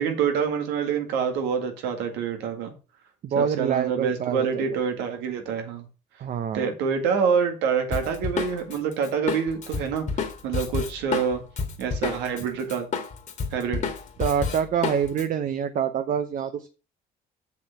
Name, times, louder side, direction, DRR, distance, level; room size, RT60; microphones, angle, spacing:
voice 1, 0.0-2.7 3.4-5.8 6.5-11.4 11.8-12.9 13.5-13.9, right 6 dB, 90° right, 2.0 m, -26 dB
voice 2, 3.2-4.8 6.2-6.7 14.2-16.7, right 8 dB, 50° right, 0.8 m, -26 dB
Drum kit, 7.9-12.4 12.7-15.2, left 5 dB, 45° left, 2.0 m, -30 dB
7.3 x 6.2 x 5.9 m
cardioid pair, 110°, 17 cm